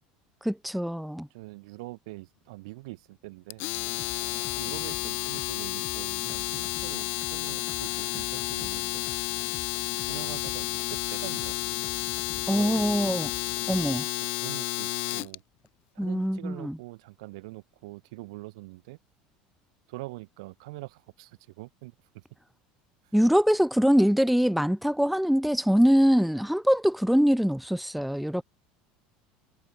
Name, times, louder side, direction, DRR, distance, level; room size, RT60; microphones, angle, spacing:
voice 1, 0.4-1.3 12.5-13.3 13.7-14.1 16.0-16.8 23.1-28.4, equal, ahead, 1.1 m, -23 dB
voice 2, 1.3-3.6 4.3-9.0 10.0-11.6 12.3-13.1 14.3-15.4 15.9-19.0 19.9-22.2 23.0-23.1, right 22 dB, 85° right, 5.0 m, -44 dB
Domestic sounds home sounds, 3.5-15.3, left 24 dB, 65° left, 2.5 m, -31 dB
sound 1, 3.7-14.0, left 12 dB, 45° left, 2.1 m, -46 dB
supercardioid pair, 110°, 3 cm